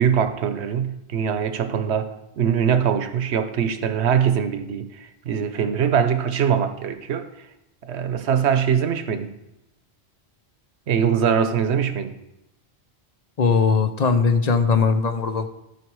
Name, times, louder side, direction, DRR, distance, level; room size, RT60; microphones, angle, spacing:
voice 1, 0.0-7.3 7.9-9.3 10.9-12.1, right 8 dB, 80° right, 10 dB, 1.0 m, -22 dB
voice 2, 13.4-15.5, left 5 dB, 45° left, 9 dB, 0.7 m, -19 dB
13.0 x 4.9 x 4.7 m, 0.88 s
omnidirectional pair, 1.1 m